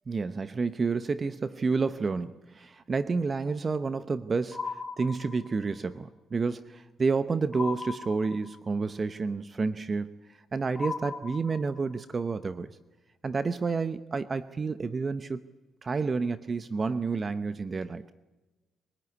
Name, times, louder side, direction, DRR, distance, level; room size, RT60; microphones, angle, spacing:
voice 1, 0.1-12.8 13.2-15.4 15.8-18.1, right 4 dB, 35° right, 13 dB, 0.8 m, -30 dB
sound 1, 4.5-5.8 7.5-8.8 10.8-12.0, left 4 dB, 30° left, 2.2 m, -38 dB
23.0 x 18.5 x 9.6 m, 1.2 s
cardioid pair, 90°, 0 cm